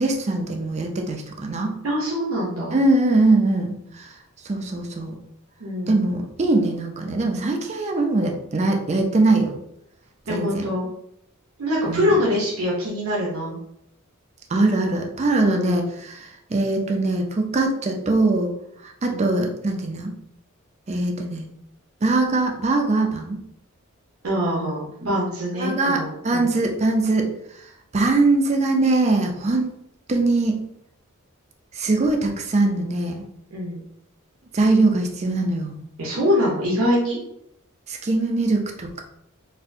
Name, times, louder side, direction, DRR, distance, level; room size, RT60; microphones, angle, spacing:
voice 1, 0.0-1.8 2.7-4.1 4.5-5.2 5.9-9.6 10.3-10.7 11.9-12.1 14.5-15.8 16.1-18.5 18.8-20.1 20.9-21.5 22.0-23.4 25.0-25.1 25.6-27.3 27.9-29.8 30.1-30.6 31.7-33.3 34.5-35.8 37.9-39.0, right 2 dB, 30° right, 3 dB, 0.4 m, -22 dB
voice 2, 1.8-2.8 5.6-6.1 10.3-10.9 11.6-13.6 15.4-15.8 19.1-19.3 24.2-26.6 33.5-33.8 36.0-37.2, left 1 dB, 70° right, -6 dB, 0.8 m, -24 dB
4.1 x 2.1 x 2.6 m, 0.75 s
head